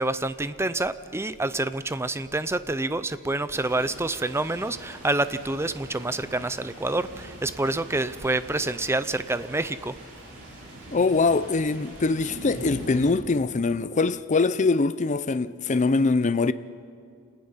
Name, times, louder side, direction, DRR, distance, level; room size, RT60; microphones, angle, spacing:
voice 1, 0.0-9.9, right 2 dB, 10° right, 0.5 m, -27 dB
sound 1, 3.5-13.1, right 1 dB, 65° right, 7.1 m, -43 dB
voice 2, 10.9-16.5, left 3 dB, 35° left, 0.5 m, -23 dB
27.5 x 19.0 x 5.7 m
head